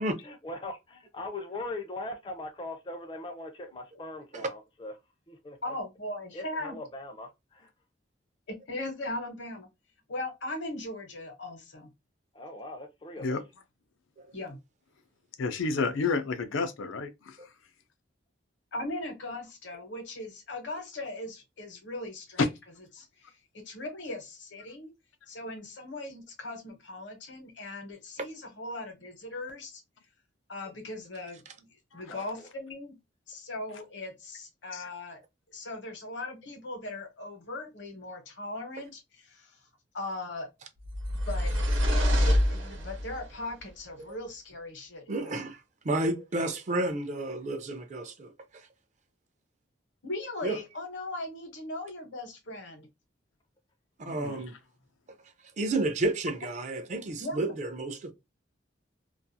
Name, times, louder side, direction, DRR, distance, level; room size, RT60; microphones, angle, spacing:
voice 1, 0.0-4.9 5.3-5.8 6.3-7.7 12.3-13.4 32.1-32.5, left 2 dB, 25° left, 0.4 m, -40 dB
voice 2, 5.6-6.8 8.5-9.7 10.1-11.9 14.3-14.6 18.7-22.5 22.9-24.9 25.3-29.8 30.5-33.0 33.3-35.2 35.5-39.6 39.9-40.5 41.3-41.5 41.9-45.4 50.0-52.9 57.2-57.5, left 2 dB, 70° left, 0.9 m, -39 dB
voice 3, 15.4-17.1 22.4-22.5 31.9-32.0 34.7-34.9 54.0-54.4, left 4 dB, 90° left, 0.5 m, -29 dB
sound 1, 40.8-43.3, equal, 90° right, 0.9 m, -26 dB
voice 4, 45.1-48.7 50.4-50.6 54.0-54.5 55.6-58.1, right 2 dB, 40° right, 0.4 m, -31 dB
2.4 x 2.3 x 2.6 m
head